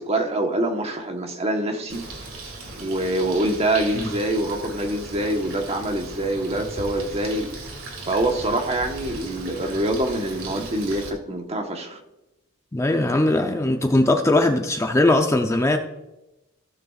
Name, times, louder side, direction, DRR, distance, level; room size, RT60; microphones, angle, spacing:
voice 1, 0.0-2.0 2.7-7.6 8.1-12.0, right 1 dB, 30° right, 1.2 m, -25 dB
Bird, 1.9-11.1, right 3 dB, 90° right, 2.2 m, -37 dB
voice 2, 12.7-15.8, left 2 dB, 15° left, 0.6 m, -20 dB
16.5 x 6.7 x 2.4 m
head